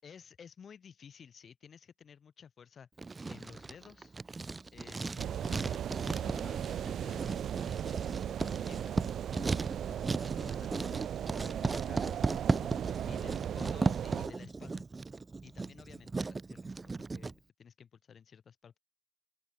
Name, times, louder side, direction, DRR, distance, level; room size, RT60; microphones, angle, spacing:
voice 1, 0.0-2.9 3.3-4.1 4.7-9.0 9.6-14.8 15.4-16.8 17.1-18.8, left 7 dB, 50° left, 6.8 m, -54 dB
Writing, 3.0-17.3, right 3 dB, 25° right, 1.7 m, -36 dB
sound 1, 5.2-14.3, right 9 dB, 65° right, 2.2 m, -37 dB
open air
cardioid pair, 90°, 0 cm